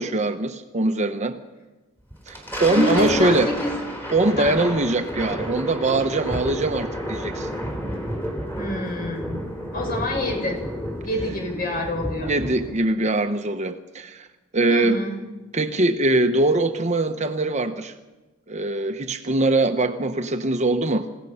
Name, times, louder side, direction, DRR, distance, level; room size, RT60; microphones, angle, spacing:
voice 1, 0.0-1.4 2.3-3.5 4.1-7.5 12.2-14.3 14.5-15.0 15.5-17.9 18.5-21.1, right 2 dB, 35° right, 7 dB, 1.0 m, -22 dB
Thunder, 2.1-12.9, equal, 10° left, 3.7 m, -31 dB
voice 2, 2.7-3.7 4.4-4.6 8.6-9.4 9.7-10.6 11.0-12.3 14.7-15.2, left 1 dB, 45° left, 0 dB, 6.3 m, -27 dB
27.5 x 17.5 x 5.7 m, 1.1 s
head